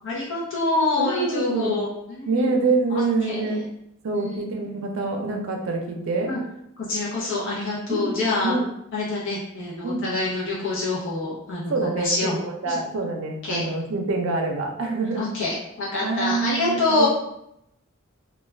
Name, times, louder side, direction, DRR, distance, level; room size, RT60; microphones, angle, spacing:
voice 1, 0.0-2.6 2.9-3.6 4.1-4.5 6.3-6.4 6.8-8.5 8.9-12.4 12.6-12.8 13.4-13.7 15.1-17.1, left 3 dB, 60° left, -6 dB, 0.7 m, -26 dB
voice 2, 1.0-1.8 2.3-3.6 4.0-6.3 7.9-8.2 8.4-8.7 9.8-10.0 11.7-12.1 12.4-15.3 16.0-17.1, right 3 dB, 65° right, 2 dB, 0.5 m, -25 dB
2.3 x 2.2 x 3.2 m, 0.79 s
head